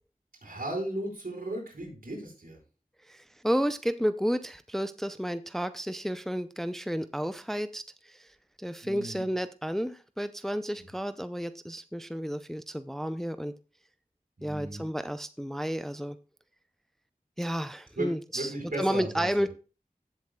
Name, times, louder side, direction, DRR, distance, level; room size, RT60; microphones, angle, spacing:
voice 1, 0.4-2.6 8.8-9.2 10.8-10.9 14.4-14.8 18.0-18.1 18.3-19.5, right 1 dB, 70° right, 0 dB, 4.7 m, -35 dB
voice 2, 3.1-8.3 8.6-13.5 14.4-16.2 17.4-19.5, equal, ahead, 11 dB, 0.5 m, -32 dB
16.0 x 7.5 x 2.3 m, 0.34 s
wide cardioid pair, 60°, 15 cm